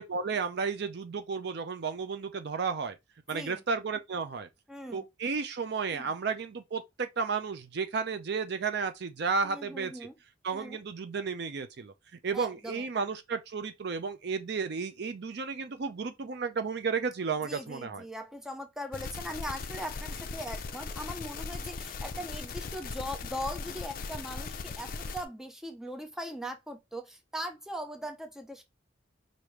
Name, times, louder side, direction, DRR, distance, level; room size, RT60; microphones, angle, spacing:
voice 1, 0.0-3.0 3.3-4.5 4.9-9.9 10.4-11.9 12.2-18.0, right 5 dB, 60° right, 0.5 m, -33 dB
voice 2, 3.3-3.6 4.7-5.0 5.9-6.1 9.4-10.1 10.5-10.8 12.3-13.1 17.4-28.6, equal, 5° right, 0.6 m, -40 dB
sound 1, 18.9-25.3, left 4 dB, 50° left, 0.5 m, -39 dB
4.9 x 2.6 x 3.1 m
head